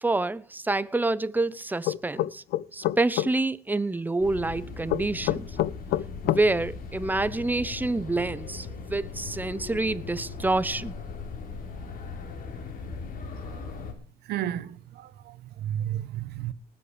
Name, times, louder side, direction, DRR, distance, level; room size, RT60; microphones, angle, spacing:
voice 1, 0.0-2.4 2.7-5.5 6.2-10.9, right 2 dB, 10° right, 0.7 m, -27 dB
sound 1, 1.9-3.3 4.9-6.4, left 14 dB, 75° left, 0.7 m, -26 dB
sound 2, 4.2-13.9, left 4 dB, 55° left, 4.3 m, -39 dB
voice 2, 14.3-16.5, right 11 dB, 75° right, 1.2 m, -32 dB
19.5 x 7.9 x 5.1 m
cardioid pair, 110°, 17 cm